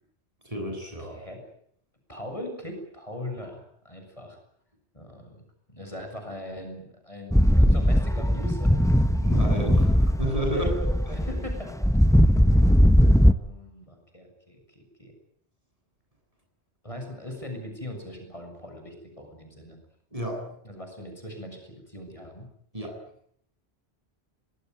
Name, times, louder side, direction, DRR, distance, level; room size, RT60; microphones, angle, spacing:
voice 1, 0.4-1.2 9.2-10.7 20.1-20.4 22.7-22.9, right 1 dB, 30° right, 2 dB, 8.3 m, -30 dB
voice 2, 1.0-1.4 2.1-4.4 4.9-5.4 5.7-8.7 10.5-10.7 11.1-11.7 13.1-15.1 16.8-19.8 20.6-22.5, left 1 dB, 30° left, 3 dB, 7.4 m, -40 dB
sound 1, 7.3-13.3, equal, 5° left, 0.9 m, -19 dB
25.0 x 20.5 x 9.4 m, 0.66 s
omnidirectional pair, 1.1 m